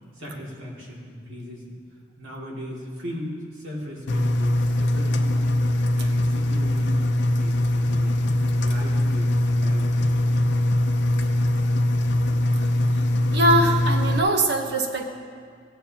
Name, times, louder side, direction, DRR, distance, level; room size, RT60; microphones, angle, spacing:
voice 1, 0.1-1.8 2.2-5.4 5.9-8.2 8.6-9.9, equal, 90° right, -4 dB, 2.4 m, -37 dB
Engine, 4.1-14.2, left 1 dB, 65° left, 0.6 m, -22 dB
voice 2, 13.3-15.1, right 1 dB, 60° right, 3 dB, 1.0 m, -21 dB
15.5 x 9.2 x 2.9 m, 2.2 s
head